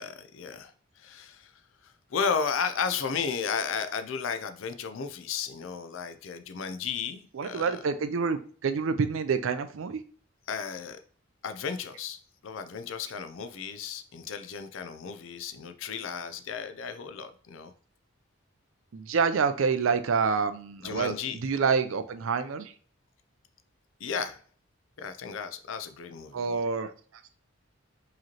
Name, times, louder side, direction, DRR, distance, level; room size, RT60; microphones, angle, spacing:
voice 1, 0.0-1.5 1.8-7.8 10.5-11.0 11.4-17.7 20.8-21.4 24.0-24.4 25.0-26.5, left 6 dB, 70° left, 0.4 m, -34 dB
voice 2, 7.3-10.0 18.9-22.7 26.3-26.9, right 5 dB, 70° right, 0.4 m, -27 dB
4.8 x 3.1 x 2.8 m
head